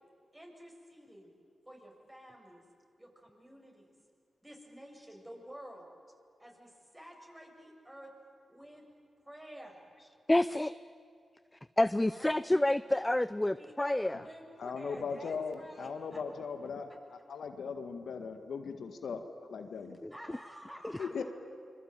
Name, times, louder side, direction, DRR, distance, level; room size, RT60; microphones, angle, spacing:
voice 1, 0.3-1.3 1.7-2.6 3.0-3.9 4.4-5.9 6.4-8.1 8.5-8.8 9.3-9.8 11.9-12.4 13.6-16.2 20.1-21.2, equal, 10° right, 1 dB, 7.1 m, -50 dB
voice 2, 10.3-10.7 11.8-14.2 20.0-20.1, left 1 dB, 15° left, 15 dB, 0.6 m, -28 dB
voice 3, 14.6-20.0 21.0-21.2, left 5 dB, 75° left, 7 dB, 1.7 m, -39 dB
25.5 x 22.0 x 9.1 m, 2.2 s
cardioid pair, 50°, 0 cm